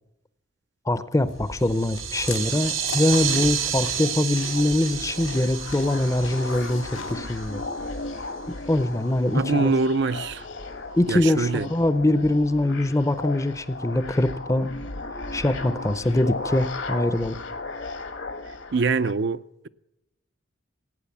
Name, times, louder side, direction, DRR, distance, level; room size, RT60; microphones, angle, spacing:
voice 1, 0.9-7.6 8.5-9.7 11.0-14.7 15.3-17.4, left 1 dB, 15° left, 0.6 m, -23 dB
Chewing mastication, 1.3-7.1, left 4 dB, 80° left, 2.2 m, -39 dB
sound 1, 1.6-7.7, right 9 dB, 85° right, 2.0 m, -30 dB
sound 2, 3.8-19.1, left 3 dB, 65° left, 1.2 m, -36 dB
voice 2, 9.3-10.5 11.1-11.7 18.7-19.7, right 4 dB, 55° right, 0.4 m, -24 dB
17.0 x 9.2 x 7.2 m
head